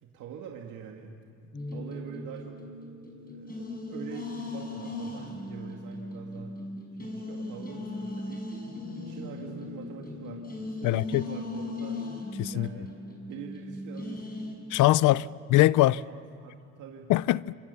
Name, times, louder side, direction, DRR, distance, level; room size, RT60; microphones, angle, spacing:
voice 1, 0.0-1.2 1.7-2.6 3.2-6.6 7.0-8.4 9.0-12.0 12.5-12.9 13.3-14.4 16.1-17.1, right 7 dB, 80° right, 2.2 m, -44 dB
sound 1, 1.5-14.5, left 2 dB, 30° left, 5.8 m, -38 dB
voice 2, 10.8-11.2 12.4-12.7 14.7-16.0 17.1-17.5, left 16 dB, 80° left, 0.6 m, -22 dB
27.0 x 26.5 x 7.0 m
cardioid pair, 95°, 31 cm